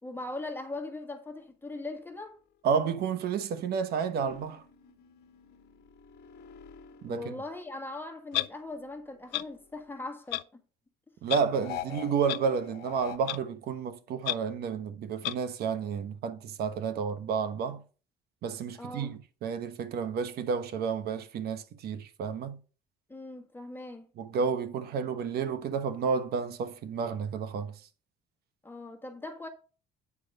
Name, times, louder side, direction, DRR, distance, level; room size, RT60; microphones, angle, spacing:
voice 1, 0.0-2.4 7.1-10.6 18.8-19.1 23.1-24.1 28.6-29.5, left 2 dB, 10° left, 1.4 m, -40 dB
voice 2, 2.6-4.6 7.0-7.3 11.2-17.8 18.4-22.6 24.2-27.8, right 6 dB, 70° right, 1.1 m, -31 dB
sound 1, 4.2-8.1 8.4-10.0 11.5-13.2, left 10 dB, 70° left, 1.2 m, -46 dB
Clock, 8.3-8.5 9.3-9.4 10.3-10.4 11.3-11.4 12.3-12.4 13.3-13.4 14.2-14.3 15.2-15.3, left 18 dB, 90° left, 0.4 m, -30 dB
8.7 x 4.9 x 5.3 m
cardioid pair, 110°, 17 cm